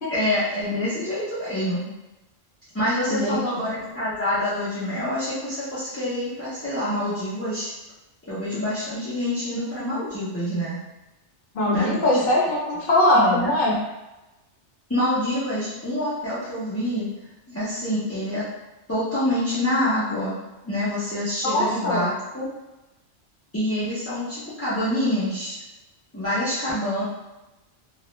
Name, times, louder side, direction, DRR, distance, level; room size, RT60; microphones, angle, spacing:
voice 1, 0.1-1.9 2.7-7.7 8.3-10.8 11.7-11.9 13.1-13.5 14.9-17.1 17.5-18.4 18.9-20.4 20.6-22.5 23.5-25.6 26.1-27.0, left 1 dB, 20° left, -13 dB, 0.4 m, -26 dB
voice 2, 3.1-3.6 11.5-13.8 21.4-22.1, left 1 dB, 55° left, -3 dB, 0.8 m, -21 dB
2.3 x 2.1 x 2.9 m, 1.0 s
omnidirectional pair, 1.2 m